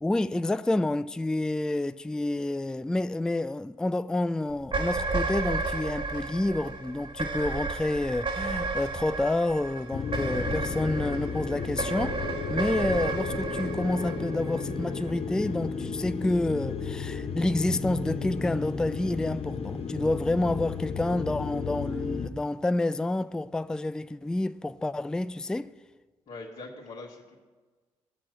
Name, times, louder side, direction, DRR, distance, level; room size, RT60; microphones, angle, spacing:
voice 1, 0.0-25.7, left 2 dB, 5° left, 0.4 m, -29 dB
sound 1, 4.6-15.1, right 3 dB, 35° right, 1.6 m, -33 dB
sound 2, 9.9-22.3, left 5 dB, 40° left, 1.0 m, -33 dB
voice 2, 26.3-27.4, left 3 dB, 60° left, 2.0 m, -42 dB
18.5 x 7.3 x 4.8 m
figure-of-eight pair, 40°, 16 cm